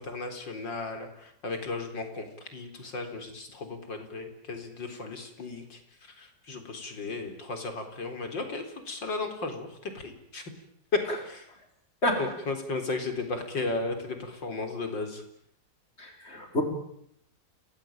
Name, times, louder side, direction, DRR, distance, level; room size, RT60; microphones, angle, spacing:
voice 1, 0.0-10.5 10.9-11.4 12.2-15.2, left 3 dB, 90° left, 7 dB, 4.8 m, -35 dB
voice 2, 16.0-16.6, left 1 dB, 35° left, 4 dB, 5.3 m, -28 dB
30.0 x 20.0 x 9.0 m, 0.71 s
omnidirectional pair, 2.0 m